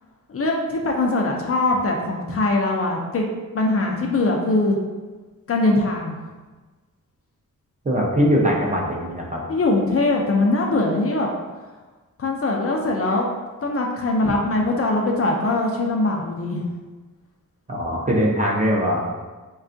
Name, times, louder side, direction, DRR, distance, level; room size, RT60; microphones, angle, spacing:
voice 1, 0.3-3.2 3.5-4.8 5.5-6.2 9.5-11.3 12.2-13.3 13.6-16.6, left 2 dB, 45° left, 0 dB, 0.4 m, -21 dB
voice 2, 7.8-9.4 14.2-14.3 17.7-19.1, equal, 25° right, -2 dB, 0.5 m, -21 dB
3.4 x 2.3 x 2.5 m, 1.3 s
cardioid pair, 80°, 34 cm